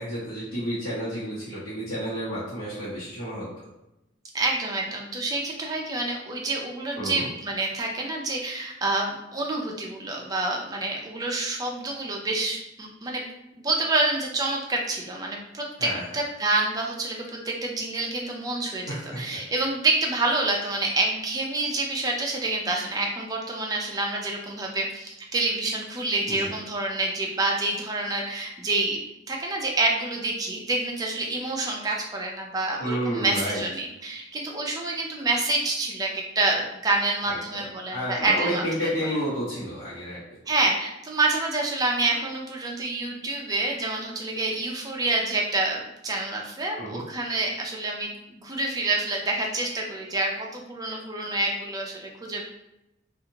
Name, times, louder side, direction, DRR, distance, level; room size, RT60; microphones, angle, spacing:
voice 1, 0.0-3.5 7.0-7.3 15.8-16.0 18.9-19.4 26.3-26.5 32.8-33.6 37.5-37.6 37.9-40.2 46.8-47.0, equal, 85° left, -12 dB, 1.0 m, -30 dB
voice 2, 4.3-13.2 13.5-29.0 29.3-38.6 39.0-39.1 40.5-52.4, right 2 dB, 20° right, 0 dB, 0.4 m, -27 dB
2.7 x 2.4 x 2.8 m, 0.90 s
head